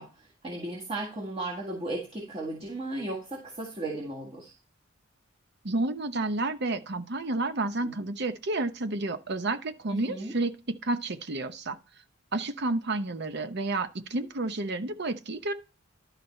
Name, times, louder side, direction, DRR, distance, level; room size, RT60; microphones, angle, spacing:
voice 1, 0.0-4.5 7.8-7.9 9.9-10.3, right 2 dB, 30° right, 1.7 m, -36 dB
voice 2, 5.6-10.5 10.8-11.8 12.3-15.5, right 2 dB, 60° right, 0.9 m, -30 dB
12.0 x 4.1 x 4.4 m
head